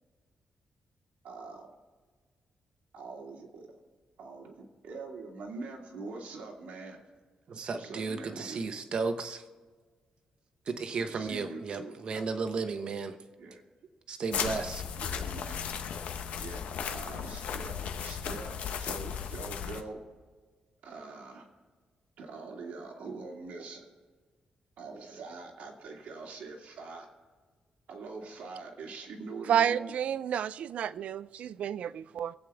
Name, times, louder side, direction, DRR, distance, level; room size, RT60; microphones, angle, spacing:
voice 1, 1.2-1.7 2.9-3.8 4.2-7.0 7.7-8.6 10.9-12.3 13.4-13.6 14.9-15.6 16.4-20.0 20.8-21.5 22.2-23.9 24.8-27.1 27.9-29.9, right 3 dB, 90° right, 0 dB, 2.4 m, -44 dB
voice 2, 7.5-9.4 10.7-13.2 14.1-14.8, right 4 dB, 45° right, 7 dB, 1.0 m, -34 dB
sound 1, 14.3-19.8, left 7 dB, 85° left, 1.0 m, -36 dB
voice 3, 29.5-32.3, right 9 dB, 65° right, 17 dB, 0.4 m, -30 dB
23.5 x 8.6 x 3.5 m, 1.5 s
wide cardioid pair, 180°, 2 cm